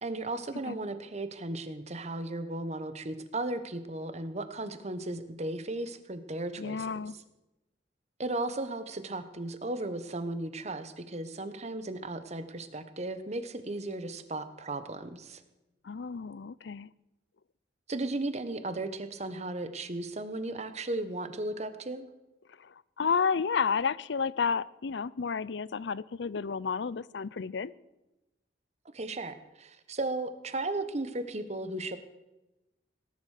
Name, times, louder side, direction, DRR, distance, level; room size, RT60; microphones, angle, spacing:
voice 1, 0.0-6.8 8.2-15.4 17.9-22.1 28.9-32.0, right 2 dB, 40° right, 11 dB, 1.3 m, -35 dB
voice 2, 6.6-7.2 15.8-16.9 22.5-27.7, left 5 dB, 75° left, 21 dB, 0.5 m, -31 dB
18.5 x 11.0 x 6.6 m, 1.0 s
head